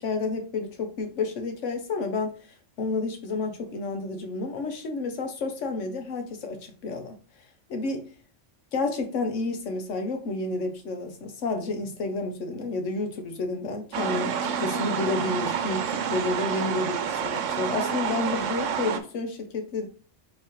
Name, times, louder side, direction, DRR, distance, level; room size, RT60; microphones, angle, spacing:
voice 1, 0.0-2.3 2.8-7.2 7.7-8.1 8.7-19.9, left 3 dB, 80° left, 1.2 m, -30 dB
sound 1, 13.9-19.0, right 7 dB, 85° right, 1.0 m, -28 dB
4.2 x 4.1 x 3.1 m
omnidirectional pair, 1.3 m